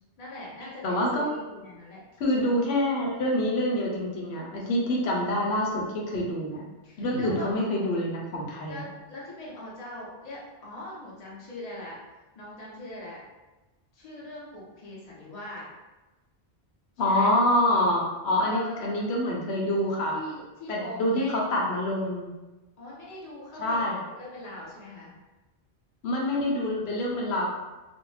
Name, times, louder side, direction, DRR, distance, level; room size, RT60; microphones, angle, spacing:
voice 1, 0.2-2.6 6.3-7.5 8.7-12.0 12.3-13.2 13.9-15.6 17.0-17.3 18.4-19.1 20.1-21.5 22.8-23.9 24.1-25.1, left 1 dB, 45° left, -6 dB, 0.7 m, -41 dB
voice 2, 0.8-1.3 2.2-6.6 7.0-8.8 17.0-20.2 20.7-22.3 23.6-24.0 26.0-27.5, left 1 dB, 90° left, -2 dB, 0.9 m, -26 dB
2.5 x 2.0 x 3.1 m, 1.1 s
omnidirectional pair, 1.1 m